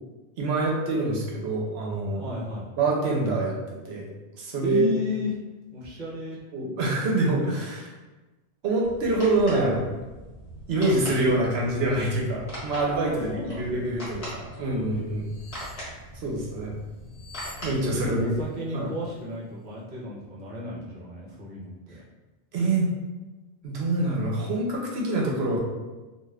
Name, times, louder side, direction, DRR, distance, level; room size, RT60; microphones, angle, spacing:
voice 1, 0.4-2.2 2.8-3.6 3.8-4.1 4.4-5.0 6.5-7.9 8.6-9.9 10.7-13.3 13.6-15.3 16.2-16.7 17.6-18.3 18.7-18.9 22.5-22.9 23.6-25.6, right 2 dB, 70° right, -2 dB, 0.9 m, -25 dB
voice 2, 2.2-2.7 4.6-5.3 5.7-6.4 13.3-13.8 17.9-22.0, left 2 dB, 45° right, -6 dB, 0.9 m, -33 dB
sound 1, 8.8-18.5, equal, 30° left, 1.1 m, -41 dB
sound 2, 15.2-15.9 17.0-18.3 18.5-18.7, left 3 dB, 80° left, 0.9 m, -46 dB
2.4 x 2.4 x 3.2 m, 1.2 s
omnidirectional pair, 1.1 m